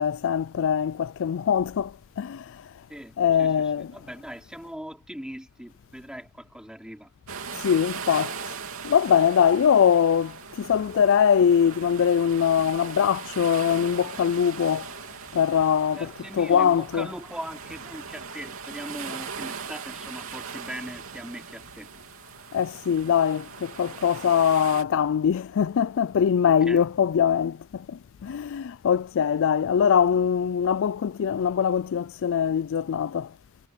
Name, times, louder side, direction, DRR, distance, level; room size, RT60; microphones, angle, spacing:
voice 1, 0.0-1.9 2.2-2.4 3.2-3.9 7.6-8.3 8.8-14.9 15.3-16.1 16.4-17.1 22.5-27.8 28.2-33.3, left 8 dB, 65° left, 0.4 m, -22 dB
voice 2, 2.9-7.1 15.9-21.9 26.4-26.8, equal, 5° right, 4.6 m, -40 dB
sound 1, 7.3-24.8, right 6 dB, 70° right, 3.3 m, -39 dB
head